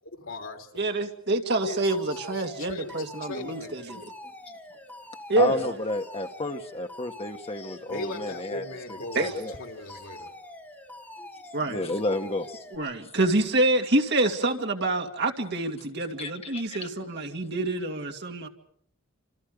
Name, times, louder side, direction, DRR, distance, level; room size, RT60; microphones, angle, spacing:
voice 1, 0.2-0.8 1.6-3.8 7.9-10.3, left 2 dB, 75° left, 3.3 m, -39 dB
voice 2, 0.8-4.0 5.3-5.6 9.2-9.3 11.5-11.8 12.7-18.5, right 2 dB, 55° right, 2.3 m, -26 dB
Alarm, 1.9-12.8, left 1 dB, 10° left, 4.6 m, -45 dB
voice 3, 5.4-9.5 11.2-11.3 11.7-12.9 16.2-16.9, left 2 dB, 30° left, 1.6 m, -32 dB
28.5 x 27.0 x 5.2 m
head